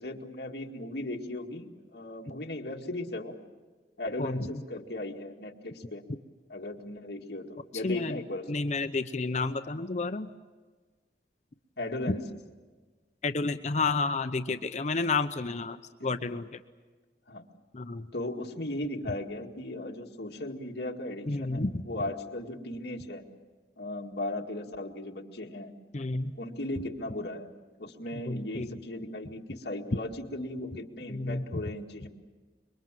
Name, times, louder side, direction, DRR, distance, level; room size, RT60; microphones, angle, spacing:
voice 1, 0.0-3.4 4.0-6.0 6.5-8.5 11.8-12.3 16.0-16.1 17.3-17.5 18.1-23.2 23.8-25.7 26.4-27.5 27.8-32.1, left 1 dB, 65° left, 1 dB, 2.1 m, -37 dB
voice 2, 7.8-8.2 8.5-10.3 13.2-16.5 17.7-18.1 21.3-21.7 25.9-26.3 28.3-28.7 31.1-31.6, left 3 dB, 40° left, 8 dB, 0.7 m, -30 dB
26.0 x 23.0 x 7.6 m, 1.4 s
head